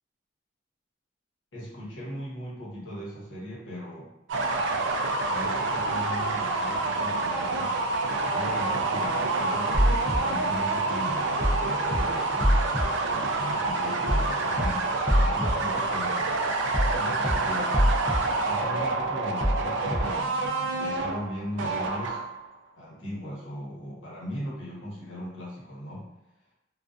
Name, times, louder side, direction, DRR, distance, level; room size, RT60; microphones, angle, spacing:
voice 1, 1.5-4.1 5.3-7.7 8.3-12.6 13.1-16.3 17.0-17.8 18.4-22.2 22.8-26.1, equal, 75° left, -6 dB, 0.9 m, -38 dB
sound 1, 4.3-22.4, right 3 dB, 70° right, 0.3 m, -27 dB
sound 2, 9.7-10.2 11.4-11.6 11.9-12.0 12.4-12.8 14.1-14.3 14.6-14.7 15.1-15.5 16.7-17.0 17.2-17.3 17.7-18.2 19.4-19.6 19.9-20.0, equal, 15° left, 0.4 m, -23 dB
2.3 x 2.3 x 2.4 m, 0.92 s
head